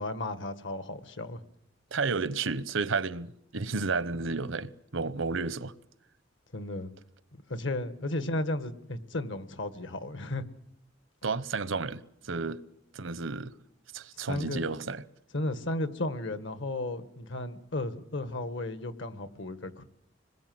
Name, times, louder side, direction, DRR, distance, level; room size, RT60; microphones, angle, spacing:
voice 1, 0.0-1.4 6.5-6.9 7.3-10.5 14.2-14.7 15.3-19.9, left 2 dB, 70° left, 1.6 m, -34 dB
voice 2, 1.9-5.7 11.2-12.6 12.9-13.5 13.9-15.0, right 4 dB, 80° right, 0.9 m, -32 dB
26.0 x 21.0 x 7.8 m
head